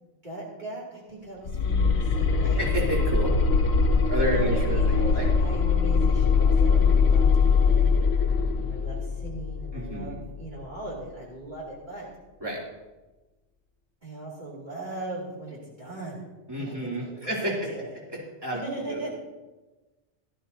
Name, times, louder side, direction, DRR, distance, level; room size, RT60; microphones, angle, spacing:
voice 1, 0.2-2.6 4.1-7.9 8.6-12.1 14.0-16.2 16.6-17.9 18.5-19.1, right 2 dB, 40° right, -5 dB, 2.7 m, -38 dB
sound 1, 1.5-10.4, left 5 dB, 65° left, 1.0 m, -22 dB
voice 2, 2.5-3.3 4.1-5.3 9.7-10.2 12.4-12.6 16.5-17.7 18.1-19.1, right 1 dB, 20° right, -5 dB, 3.1 m, -31 dB
17.0 x 13.0 x 2.8 m, 1.1 s
omnidirectional pair, 1.2 m